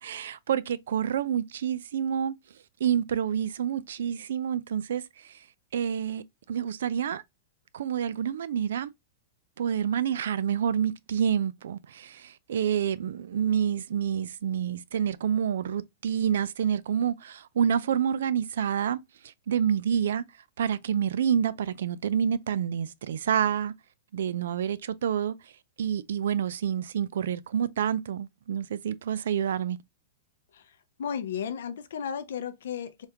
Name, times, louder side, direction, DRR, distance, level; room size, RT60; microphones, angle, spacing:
voice 1, 0.0-2.3 2.8-5.4 5.7-6.2 6.5-7.2 7.7-8.9 9.6-20.2 20.6-23.7 24.1-25.4 25.8-29.8, right 8 dB, 70° right, 0.3 m, -28 dB
voice 2, 31.0-33.1, left 7 dB, 70° left, 0.5 m, -34 dB
3.4 x 2.3 x 2.8 m
supercardioid pair, 180°, 0 cm